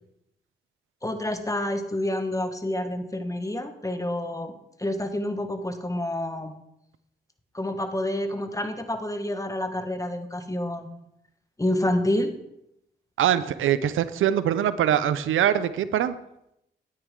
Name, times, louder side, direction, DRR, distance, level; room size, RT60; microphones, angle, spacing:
voice 1, 1.0-4.5 4.8-6.5 7.5-10.9 11.6-12.3, left 1 dB, 15° left, 8 dB, 1.3 m, -28 dB
voice 2, 13.2-16.2, right 10 dB, 85° right, 14 dB, 0.5 m, -23 dB
9.4 x 9.2 x 3.6 m, 0.80 s
supercardioid pair, 45°, 20 cm